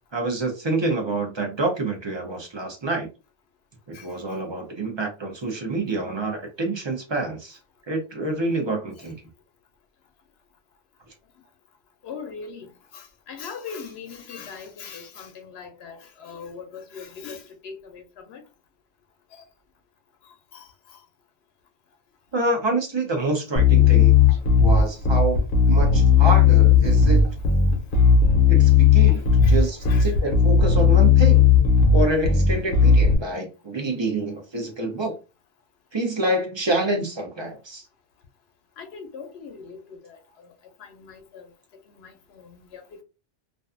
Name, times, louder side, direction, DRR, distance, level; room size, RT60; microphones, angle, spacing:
voice 1, 0.1-3.1 3.9-7.6 7.9-9.2 22.3-24.1 24.6-27.4 28.5-31.4 31.9-35.2 35.9-37.8, right 2 dB, 30° right, 0.6 m, -27 dB
voice 2, 12.0-12.7 12.9-18.4 20.5-20.7 29.4-30.2 38.8-40.2 40.9-41.5 42.0-42.8, left 5 dB, 85° left, 0.9 m, -40 dB
Bass guitar, 23.6-33.2, left 6 dB, 55° left, 0.8 m, -16 dB
2.4 x 2.3 x 2.4 m
omnidirectional pair, 1.0 m